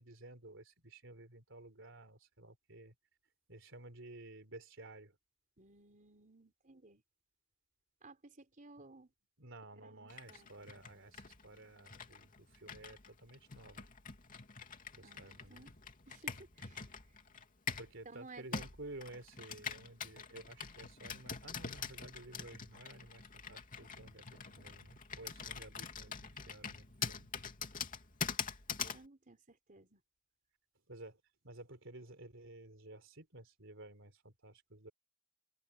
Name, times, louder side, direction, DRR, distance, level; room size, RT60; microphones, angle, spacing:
voice 1, 0.0-3.0 3.5-5.2 9.4-13.9 14.9-15.6 17.8-27.3 30.9-34.9, right 2 dB, 60° right, 4.1 m, -53 dB
voice 2, 5.6-7.0 8.0-9.1 9.8-10.5 15.0-15.7 16.1-17.2 18.1-18.6 28.7-30.0, right 3 dB, 40° right, 3.9 m, -57 dB
Computer keyboard, 10.1-18.0 18.5-29.0, left 6 dB, 40° left, 2.9 m, -45 dB
head